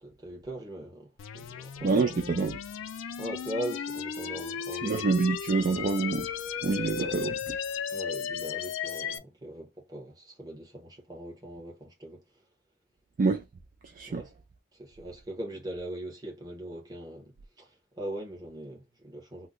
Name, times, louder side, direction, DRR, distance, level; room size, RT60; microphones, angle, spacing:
voice 1, 0.0-2.2 3.2-5.0 6.6-7.2 7.9-12.2 14.1-14.3 14.8-19.5, right 1 dB, 20° right, 0.9 m, -40 dB
sound 1, 1.2-9.2, left 7 dB, 85° left, 0.4 m, -35 dB
voice 2, 1.8-2.6 4.8-6.3 6.6-7.3 13.2-13.4 13.9-14.2, right 4 dB, 45° right, 0.3 m, -26 dB
2.7 x 2.1 x 3.7 m
head